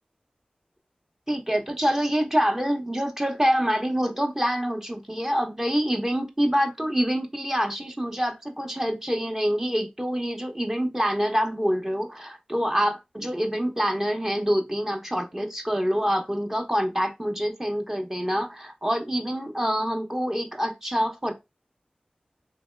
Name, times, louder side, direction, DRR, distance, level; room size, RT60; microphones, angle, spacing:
voice 1, 1.3-21.3, equal, 15° right, 0.8 m, -26 dB
3.1 x 2.7 x 3.2 m
cardioid pair, 40°, 3 cm